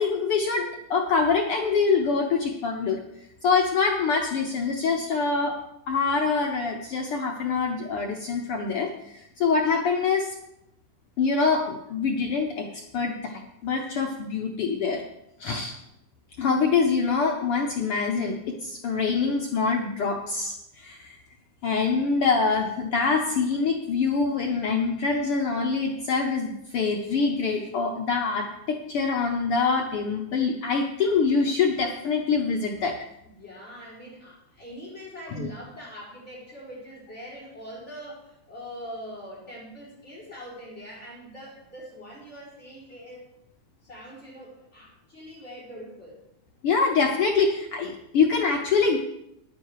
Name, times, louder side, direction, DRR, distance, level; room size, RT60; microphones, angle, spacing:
voice 1, 0.0-3.0 3.4-5.5 5.9-10.3 11.2-15.0 15.4-15.7 16.4-21.2 21.6-33.0 35.3-35.5 46.6-49.0, left 5 dB, 70° left, 1 dB, 1.4 m, -25 dB
voice 2, 33.2-43.3 43.8-46.2, equal, 20° left, -5 dB, 4.6 m, -43 dB
10.5 x 9.5 x 4.9 m, 0.80 s
omnidirectional pair, 3.6 m